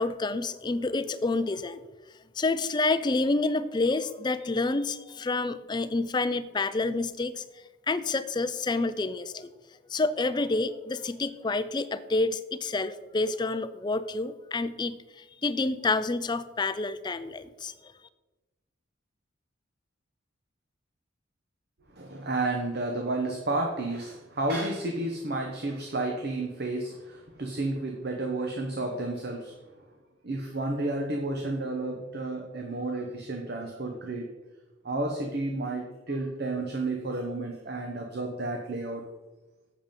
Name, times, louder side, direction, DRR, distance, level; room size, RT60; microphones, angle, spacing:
voice 1, 0.0-1.8 2.4-7.4 7.9-9.5 9.9-17.7, left 3 dB, 20° left, 13 dB, 0.4 m, -28 dB
voice 2, 22.0-29.5 30.2-34.3 34.8-39.0, right 2 dB, 50° right, 2 dB, 0.9 m, -31 dB
7.5 x 7.2 x 5.2 m, 1.2 s
head